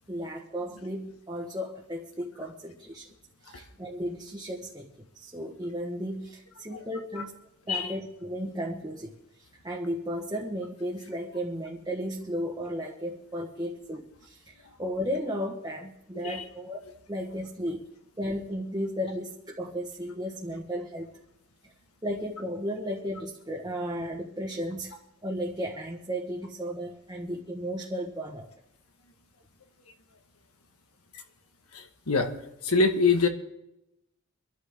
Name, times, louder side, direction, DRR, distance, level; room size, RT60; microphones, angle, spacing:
voice 1, 0.1-3.1 3.4-4.9 5.1-7.3 7.7-16.8 17.1-17.8 18.2-21.1 22.0-25.0 25.2-28.5, equal, 20° right, -2 dB, 1.4 m, -34 dB
voice 2, 31.7-32.3 32.6-33.3, left 4 dB, 85° left, 5 dB, 1.7 m, -24 dB
25.0 x 12.0 x 3.7 m, 0.87 s
head